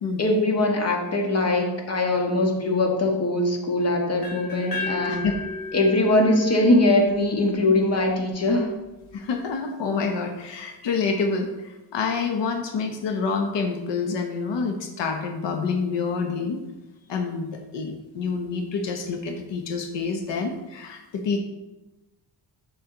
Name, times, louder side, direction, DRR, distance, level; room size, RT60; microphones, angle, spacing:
voice 1, 0.2-5.2 5.7-8.7, left 2 dB, 35° left, 2 dB, 1.4 m, -21 dB
sound 1, 4.2-8.1, left 4 dB, 55° left, 2.8 m, -34 dB
voice 2, 9.1-16.8 17.1-21.4, left 4 dB, 80° left, 4 dB, 1.0 m, -27 dB
7.2 x 6.8 x 3.8 m, 1.0 s
cardioid pair, 130°, 42 cm